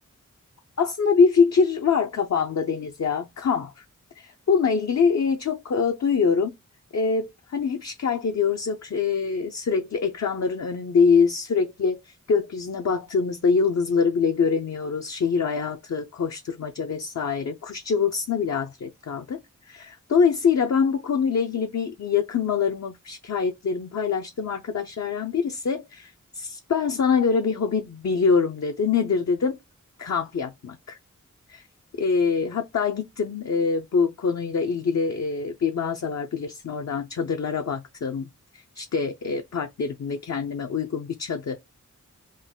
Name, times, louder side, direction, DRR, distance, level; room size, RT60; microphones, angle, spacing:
voice 1, 0.8-3.8 4.2-6.5 6.9-19.4 19.7-29.6 30.0-31.0 31.5-31.6 32.0-38.3 38.5-41.6, left 5 dB, 60° left, 0.6 m, -24 dB
3.9 x 2.1 x 3.7 m
wide cardioid pair, 50°, 31 cm